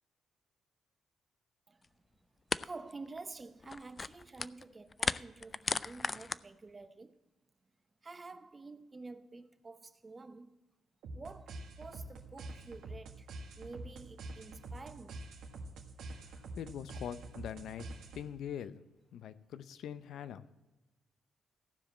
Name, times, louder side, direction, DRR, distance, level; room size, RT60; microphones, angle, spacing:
sound 1, 1.8-1.9 2.5-2.7 2.9-3.2 3.6-4.6 4.9-6.4, left 4 dB, 30° left, 0.3 m, -35 dB
voice 1, 2.6-7.1 8.0-10.6 11.1-13.3 13.5-15.2, right 3 dB, 30° right, 0.8 m, -49 dB
sound 2, 11.0-18.5, right 2 dB, 85° right, 1.6 m, -47 dB
voice 2, 16.6-17.9 18.1-18.8 19.1-20.5, left 9 dB, 80° left, 0.6 m, -43 dB
14.5 x 5.0 x 7.4 m
cardioid pair, 90°, 0 cm